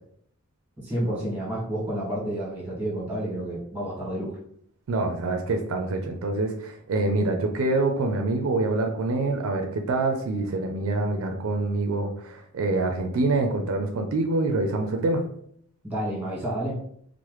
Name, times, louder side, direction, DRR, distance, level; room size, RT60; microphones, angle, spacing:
voice 1, 0.8-4.4 15.8-16.8, right 1 dB, 5° right, -7 dB, 1.4 m, -30 dB
voice 2, 4.9-15.2, right 2 dB, 65° right, 4 dB, 0.4 m, -26 dB
3.0 x 2.0 x 3.1 m, 0.66 s
head